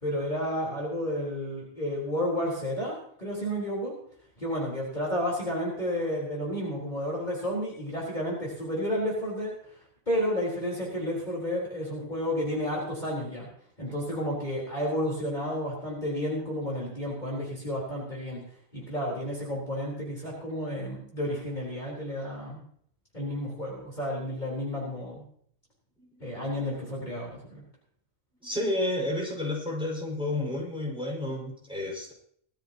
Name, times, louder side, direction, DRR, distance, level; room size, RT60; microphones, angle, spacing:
voice 1, 0.0-3.9 4.4-9.5 10.1-13.5 13.8-18.4 18.7-22.6 23.1-25.2 26.2-27.6, equal, 30° left, -5 dB, 4.2 m, -31 dB
voice 2, 28.4-32.1, left 1 dB, 5° right, -3 dB, 5.4 m, -31 dB
19.0 x 13.0 x 2.9 m, 0.63 s
omnidirectional pair, 1.4 m